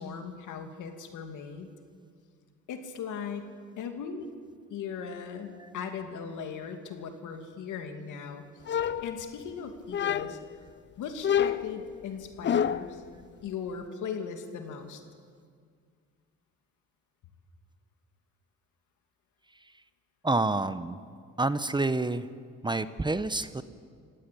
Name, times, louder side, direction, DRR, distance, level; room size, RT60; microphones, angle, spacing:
voice 1, 0.0-1.7 2.7-4.3 4.7-8.4 8.7-10.4 11.0-13.0 13.4-15.0, left 6 dB, 80° left, 5 dB, 2.6 m, -38 dB
sound 1, 8.7-9.5 9.9-10.6 11.2-13.0, left 9 dB, 40° left, 0.6 m, -28 dB
voice 2, 20.2-21.0 21.4-22.3 22.6-23.6, right 2 dB, 15° right, 13 dB, 0.9 m, -28 dB
26.5 x 17.0 x 8.4 m, 2.1 s
cardioid pair, 90°, 30 cm